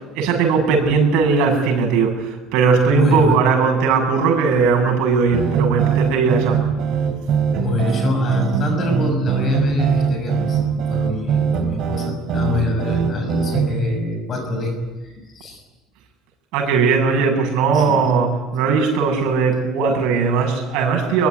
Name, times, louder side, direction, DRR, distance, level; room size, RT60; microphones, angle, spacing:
voice 1, 0.1-6.6 16.5-21.3, right 5 dB, 75° right, 3 dB, 7.6 m, -18 dB
voice 2, 2.9-3.4 7.6-10.6 10.9-14.7 15.0-15.6 17.7-18.1, left 2 dB, 30° left, 5 dB, 6.4 m, -24 dB
sound 1, 5.3-13.7, right 7 dB, 45° right, 3.5 m, -21 dB
23.5 x 23.0 x 9.7 m, 1.2 s
cardioid pair, 180°, 0 cm